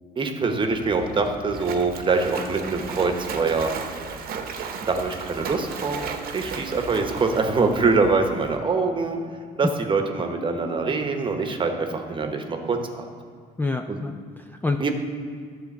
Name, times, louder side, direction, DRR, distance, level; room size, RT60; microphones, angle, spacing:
voice 1, 0.2-3.7 4.8-6.0 6.3-9.2 9.6-13.0 13.9-14.0 14.8-14.9, right 4 dB, 30° right, 5 dB, 1.0 m, -24 dB
Splash splatter, 0.7-8.6, right 5 dB, 60° right, 0.9 m, -35 dB
voice 2, 13.6-14.9, left 3 dB, 10° left, 5 dB, 0.3 m, -28 dB
11.5 x 3.9 x 7.0 m, 2.1 s
cardioid pair, 110°, 17 cm